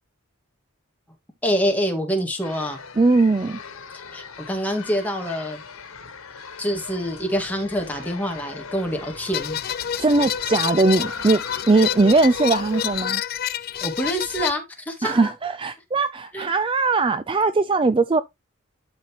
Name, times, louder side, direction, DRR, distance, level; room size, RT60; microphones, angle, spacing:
voice 1, 1.4-2.8 4.1-5.6 6.6-9.6 13.8-15.3 16.3-16.5, equal, 10° left, 2.0 m, -26 dB
sound 1, 2.4-13.0, left 5 dB, 85° left, 1.5 m, -39 dB
voice 2, 3.0-3.6 10.0-13.2 15.0-18.2, right 3 dB, 25° right, 0.4 m, -20 dB
sound 2, 9.3-14.5, left 9 dB, 45° left, 0.4 m, -28 dB
12.0 x 4.1 x 3.1 m
head